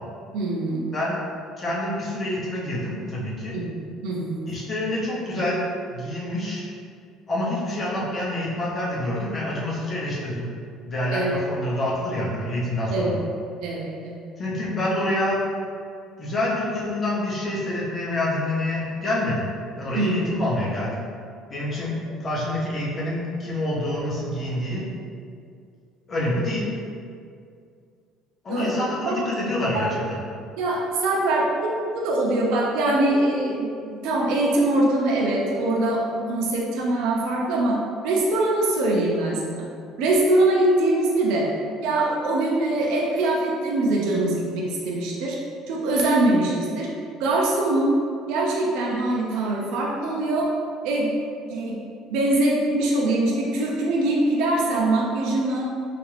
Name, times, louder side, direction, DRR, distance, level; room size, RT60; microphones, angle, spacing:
voice 1, 0.3-0.9 3.5-3.6 4.0-4.4 11.1-11.3 12.9-13.1 13.6-14.1 19.9-20.4 28.5-28.7 29.0-29.3 29.7-29.9 30.6-37.8 38.0-39.7 40.0-41.5 41.8-45.4 45.7-46.9 47.2-47.9 48.3-50.5 50.8-51.2 51.5-51.8 52.1-55.7, right 2 dB, 70° right, -3 dB, 0.5 m, -23 dB
voice 2, 1.6-3.6 4.5-5.6 5.9-6.6 7.3-10.5 10.9-13.2 14.4-15.4 16.2-19.5 19.8-21.0 21.5-24.8 26.1-26.7 28.4-30.2, left 1 dB, 25° left, -5 dB, 0.7 m, -27 dB
3.3 x 2.5 x 3.2 m, 2.3 s
cardioid pair, 165°, 0 cm